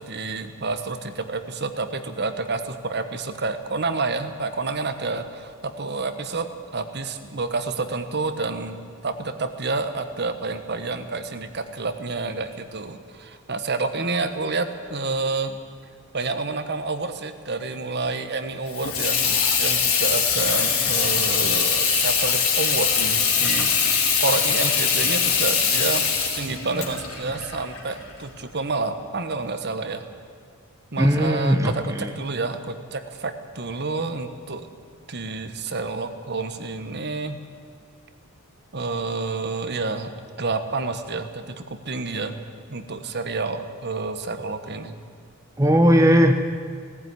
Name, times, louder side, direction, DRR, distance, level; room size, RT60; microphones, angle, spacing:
voice 1, 0.0-8.8 9.0-15.6 16.1-26.1 26.3-30.0 30.9-34.7 35.1-37.4 38.7-40.1 40.4-42.4 42.7-45.0, right 3 dB, 50° right, 9 dB, 1.3 m, -29 dB
Water tap faucet / Sink (filling or washing), 18.7-28.3, left 6 dB, 75° left, 3.6 m, -22 dB
voice 2, 31.0-32.1 45.6-46.3, equal, 15° right, 5 dB, 1.0 m, -18 dB
18.5 x 15.0 x 9.7 m, 2.1 s
head